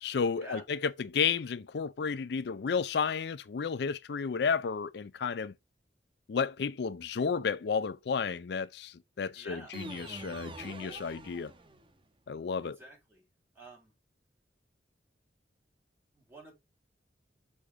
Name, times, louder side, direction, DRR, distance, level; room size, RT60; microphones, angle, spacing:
voice 1, 0.0-5.5 6.3-11.5 12.3-12.8, left 6 dB, 65° left, 0.4 m, -32 dB
voice 2, 9.4-9.8 12.6-13.2 13.5-13.9 16.1-16.5, right 2 dB, 10° right, 5.2 m, -49 dB
sound 1, 9.7-12.0, right 2 dB, 30° right, 1.2 m, -45 dB
6.7 x 5.1 x 4.7 m
head